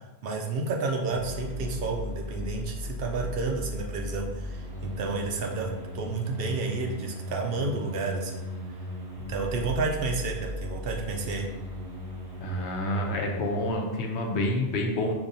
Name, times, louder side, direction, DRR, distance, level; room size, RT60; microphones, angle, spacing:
voice 1, 0.2-8.4 9.3-11.5, right 3 dB, 65° right, 1 dB, 0.7 m, -31 dB
sound 1, 1.0-13.7, left 1 dB, 85° right, 1.4 m, -37 dB
voice 2, 12.4-15.1, left 1 dB, 90° left, 2 dB, 0.9 m, -28 dB
4.7 x 2.6 x 2.6 m, 1.0 s
omnidirectional pair, 1.1 m